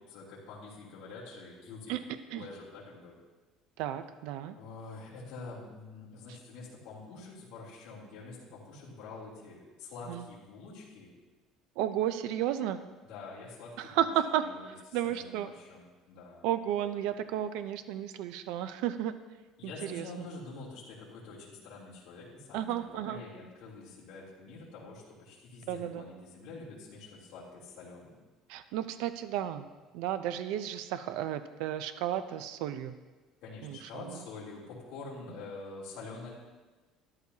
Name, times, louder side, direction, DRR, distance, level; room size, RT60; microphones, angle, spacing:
voice 1, 0.0-1.9 2.3-3.2 4.5-11.1 13.0-14.1 14.4-14.6 15.0-16.4 19.6-28.2 33.4-36.3, left 3 dB, 65° left, -8 dB, 3.2 m, -46 dB
voice 2, 3.8-4.6 6.3-6.4 10.1-10.3 11.8-12.8 13.8-15.5 16.4-19.1 19.6-20.3 22.5-23.2 25.7-26.0 28.5-29.7 29.9-32.9 33.6-34.2, right 11 dB, 75° right, 11 dB, 0.5 m, -33 dB
13.0 x 11.0 x 2.8 m, 1.3 s
cardioid pair, 155°, 0 cm